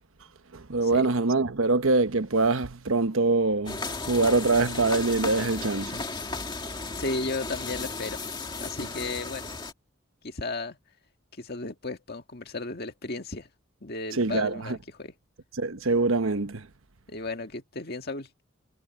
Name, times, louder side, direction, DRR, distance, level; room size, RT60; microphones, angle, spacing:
voice 1, 0.5-6.0 14.1-14.8 15.5-16.7, right 3 dB, 75° right, 1.1 m, -24 dB
sound 1, 3.7-9.7, left 3 dB, 20° left, 2.2 m, -35 dB
voice 2, 7.0-8.2 8.6-9.5 10.2-10.8 11.4-13.5 13.8-15.1 17.1-18.3, left 3 dB, 50° left, 1.8 m, -34 dB
head